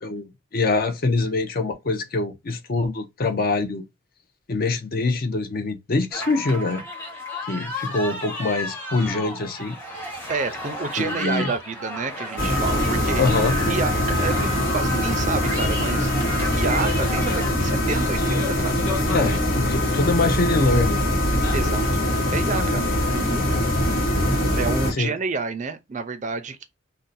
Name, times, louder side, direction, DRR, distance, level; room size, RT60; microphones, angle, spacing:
voice 1, 0.0-3.8 4.5-6.8 7.5-9.7 11.0-11.5 13.2-13.6 19.1-21.1 24.9-25.1, left 3 dB, 45° left, 0.5 m, -24 dB
sound 1, 6.1-17.5, left 1 dB, 10° left, 0.9 m, -33 dB
voice 2, 10.3-13.3 13.6-16.1 16.5-18.8 21.5-22.0 22.3-22.8 23.1-23.5 24.5-26.6, right 4 dB, 35° right, 0.4 m, -29 dB
sound 2, 12.4-24.9, left 1 dB, 65° left, 1.1 m, -22 dB
2.6 x 2.1 x 3.9 m
head